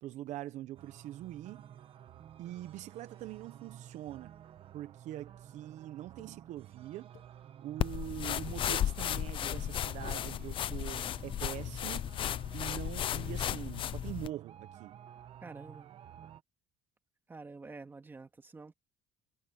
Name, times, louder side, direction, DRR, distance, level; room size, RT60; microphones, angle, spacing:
voice 1, 0.0-1.6 2.4-4.3 4.7-7.1 7.6-12.1 12.5-15.0, right 14 dB, 65° right, 0.9 m, -43 dB
sound 1, 0.7-16.4, right 10 dB, 45° right, 1.4 m, -53 dB
sound 2, 5.2-5.3 6.2-6.3 6.9-7.3 7.9-8.3 9.0-9.3 10.0-10.2, left 17 dB, 85° left, 6.4 m, -62 dB
sound 3, 7.8-14.3, left 11 dB, 40° left, 0.6 m, -34 dB
voice 2, 15.4-15.9 17.3-18.7, right 3 dB, 15° right, 2.1 m, -48 dB
cardioid pair, 160°, 13 cm